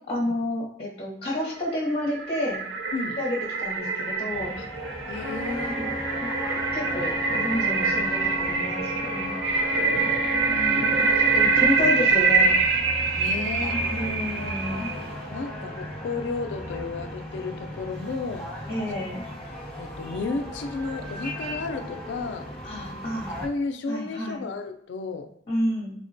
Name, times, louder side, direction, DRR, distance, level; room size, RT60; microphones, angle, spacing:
voice 1, 0.1-2.6 3.2-4.5 5.5-5.9 6.2-6.3 6.7-9.4 10.3-12.5 13.7-14.9 18.7-19.2 22.6-23.3 23.9-24.4 25.5-25.9, left 1 dB, 35° left, -3 dB, 0.8 m, -30 dB
sound 1, 1.6-15.0, right 4 dB, 85° right, 0.4 m, -25 dB
sound 2, 4.3-23.5, equal, 10° left, 1.0 m, -37 dB
voice 2, 5.1-5.8 9.2-9.3 9.8-10.2 13.2-13.8 14.8-18.5 19.8-22.5 23.4-25.3, left 3 dB, 80° left, 8 dB, 0.3 m, -33 dB
Trumpet, 5.2-12.1, left 2 dB, 30° right, 0.6 m, -35 dB
3.5 x 2.1 x 2.6 m, 0.73 s
head